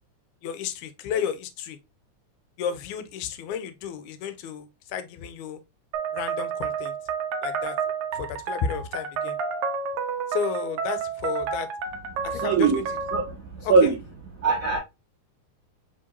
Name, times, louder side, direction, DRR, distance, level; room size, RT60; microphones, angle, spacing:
voice 1, 0.4-1.8 2.6-5.6 6.1-6.9 7.4-7.8 8.1-9.4 10.3-11.7 12.2-12.8 13.6-13.9, left 7 dB, 85° left, 2.0 m, -32 dB
sound 1, 5.9-13.3, right 6 dB, 85° right, 1.3 m, -30 dB
voice 2, 12.1-12.8 13.1-13.9 14.4-14.8, right 4 dB, 60° right, 0.8 m, -22 dB
4.4 x 3.7 x 2.6 m
omnidirectional pair, 3.4 m